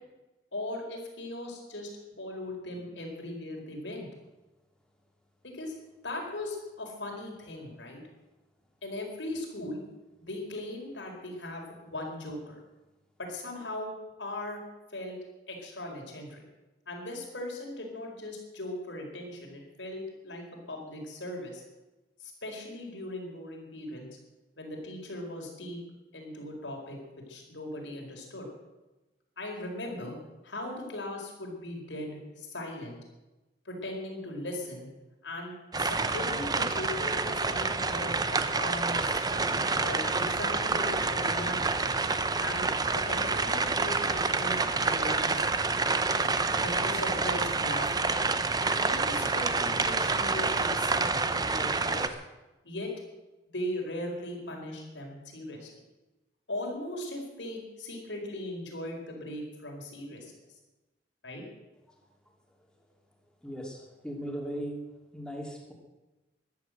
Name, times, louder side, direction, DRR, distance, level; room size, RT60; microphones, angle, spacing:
voice 1, 0.5-4.1 5.4-5.7 6.0-8.0 8.8-9.8 10.2-12.6 13.2-13.9 14.2-14.6 14.9-15.2 15.5-16.4 16.9-21.6 22.2-24.1 24.6-25.8 26.1-27.0 27.3-28.5 29.4-30.2 30.4-33.0 33.6-34.9 35.2-42.0 42.4-42.7 42.9-45.5 46.6-48.1 48.7-52.2 52.6-52.9 53.5-55.7 56.5-60.3 61.2-61.4, left 1 dB, 90° left, 1 dB, 4.7 m, -39 dB
sound 1, 35.7-52.1, right 3 dB, 20° right, 0.8 m, -28 dB
voice 2, 63.4-64.8 65.1-65.7, equal, 5° left, 0 dB, 2.8 m, -38 dB
14.0 x 12.0 x 7.8 m, 1.1 s
head